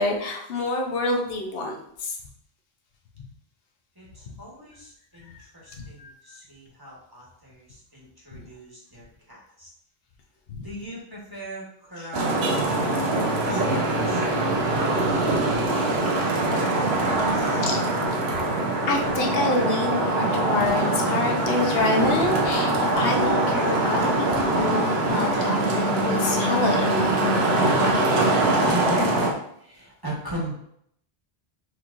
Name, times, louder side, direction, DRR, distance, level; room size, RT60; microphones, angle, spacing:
voice 1, 0.0-2.1 5.8-6.1 10.5-10.6 17.6-17.8 18.9-27.1, left 2 dB, 70° left, 1 dB, 1.0 m, -27 dB
voice 2, 3.9-9.7 10.6-14.3 14.9-17.8 28.7-29.2 29.6-30.5, equal, 20° right, -5 dB, 1.2 m, -38 dB
Traffic noise roadway noise, 12.1-29.3, right 2 dB, 85° right, 1.0 m, -23 dB
6.2 x 3.0 x 2.5 m, 0.71 s
omnidirectional pair, 1.1 m